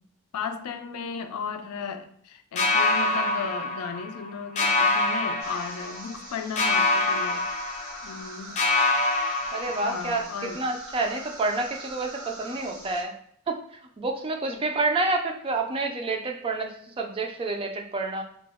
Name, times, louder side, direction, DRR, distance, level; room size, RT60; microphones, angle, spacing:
voice 1, 0.3-8.6 9.7-10.6, left 6 dB, 85° left, 0.4 m, -35 dB
sound 1, 2.6-4.3 4.6-6.2 6.6-8.3 8.6-10.2, left 2 dB, 35° left, 0.5 m, -25 dB
sound 2, 5.4-13.0, right 2 dB, 70° right, 0.9 m, -44 dB
voice 2, 9.5-10.3 10.5-13.1 13.5-13.6 14.0-18.2, right 3 dB, 25° right, 0.4 m, -28 dB
2.9 x 2.1 x 3.5 m
head